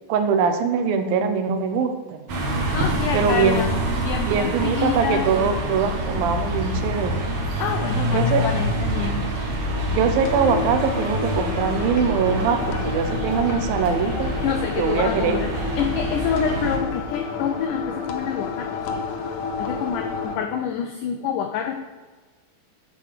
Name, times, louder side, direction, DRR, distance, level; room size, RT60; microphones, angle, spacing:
voice 1, 0.1-2.2 3.1-3.7 4.2-7.2 8.1-8.5 9.9-14.3 14.8-15.4, right 6 dB, 80° right, 8 dB, 2.4 m, -22 dB
sound 1, 2.3-16.8, right 1 dB, 55° right, 1.7 m, -26 dB
voice 2, 2.7-3.7 4.0-5.6 7.6-9.2 14.4-19.1 19.6-21.8, left 8 dB, 85° left, 5 dB, 1.8 m, -27 dB
sound 2, 10.2-20.4, left 5 dB, 70° left, 2.3 m, -31 dB
9.7 x 5.0 x 6.5 m, 1.3 s
omnidirectional pair, 4.4 m